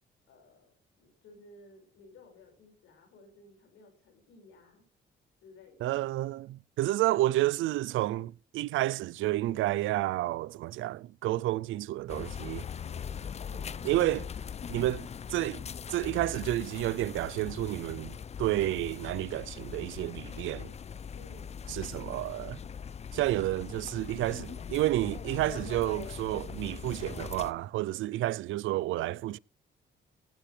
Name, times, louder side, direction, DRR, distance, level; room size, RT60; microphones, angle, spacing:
voice 1, 0.3-4.9 5.4-6.0 13.4-14.0 21.1-21.6, left 2 dB, 85° left, 5.6 m, -56 dB
voice 2, 5.8-12.6 13.8-14.3 14.7-15.6 15.9-20.7 21.7-22.6 23.1-29.4, right 16 dB, 80° right, 0.5 m, -30 dB
sound 1, 12.1-27.5, left 7 dB, 35° left, 0.5 m, -41 dB
19.0 x 9.1 x 3.3 m
cardioid pair, 90°, 20 cm